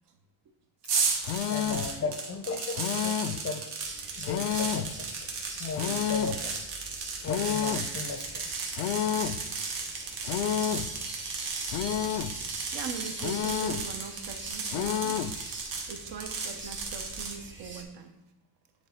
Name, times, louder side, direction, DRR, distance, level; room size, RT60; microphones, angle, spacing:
strange sound nails on a plexi plate, 0.9-17.4, right 4 dB, 75° right, 1.5 m, -35 dB
sound 1, 1.2-1.9 2.7-3.5 4.2-5.0 5.7-6.4 7.2-7.9 8.7-9.4 10.2-10.9 11.7-12.4 13.2-13.9 14.7-15.4, left 10 dB, 80° left, 0.5 m, -30 dB
voice 1, 1.5-3.7 4.1-5.3 5.6-6.6 7.2-8.5, left 4 dB, 30° left, 7 dB, 0.5 m, -36 dB
sound 2, 3.8-17.8, right 3 dB, 25° right, 0.9 m, -43 dB
voice 2, 12.7-15.4 15.9-18.2, right 6 dB, 60° right, 6 dB, 0.9 m, -41 dB
9.0 x 3.5 x 4.4 m, 0.97 s
cardioid pair, 150°, 46 cm